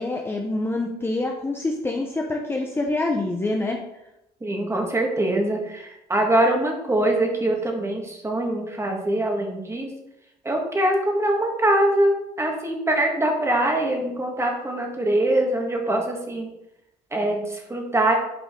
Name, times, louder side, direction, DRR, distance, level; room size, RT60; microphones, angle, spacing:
voice 1, 0.0-3.8, left 2 dB, 15° left, 1 dB, 0.7 m, -26 dB
voice 2, 4.4-9.9 10.4-16.5 17.1-18.2, right 1 dB, 15° right, 1 dB, 1.5 m, -23 dB
8.1 x 5.1 x 3.7 m, 0.87 s
cardioid pair, 110°, 17 cm